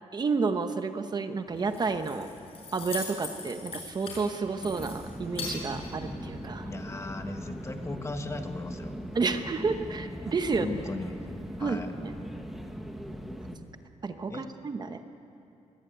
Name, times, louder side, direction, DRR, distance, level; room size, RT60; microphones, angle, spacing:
voice 1, 0.1-2.3 2.7-6.7 9.1-10.7 11.6-12.1 14.0-15.0, right 4 dB, 35° right, 8 dB, 1.0 m, -30 dB
Keys jangling, 1.5-6.5, left 4 dB, 50° left, 6.6 m, -41 dB
sound 1, 4.6-13.6, equal, ahead, 1.4 m, -40 dB
voice 2, 6.6-9.0 10.5-11.2 11.6-11.9 14.3-14.5, left 3 dB, 20° left, 6 dB, 1.4 m, -37 dB
25.0 x 21.0 x 9.3 m, 2.8 s
wide cardioid pair, 170°, 13 cm